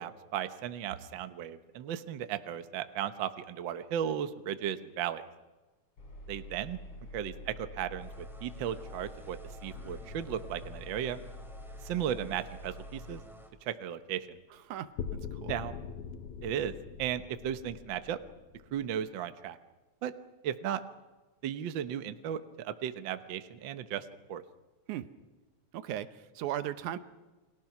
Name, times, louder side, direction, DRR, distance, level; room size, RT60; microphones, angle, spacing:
voice 1, 0.0-5.2 6.3-6.8 7.1-11.2 11.8-13.2 13.6-14.4 15.5-15.7 16.4-16.7 17.0-18.2 18.7-19.6 20.0-20.1 20.4-20.8 21.4-24.4, right 9 dB, 60° right, 10 dB, 1.2 m, -35 dB
Engine, 6.0-13.2, left 1 dB, 45° left, 6.6 m, -47 dB
sound 1, 8.0-13.5, equal, ahead, 2.8 m, -54 dB
sound 2, 9.7-12.5 15.0-19.1, left 7 dB, 75° left, 2.6 m, -44 dB
voice 2, 25.7-27.0, right 11 dB, 80° right, 12 dB, 2.4 m, -36 dB
29.5 x 23.0 x 6.0 m, 1.2 s
omnidirectional pair, 3.4 m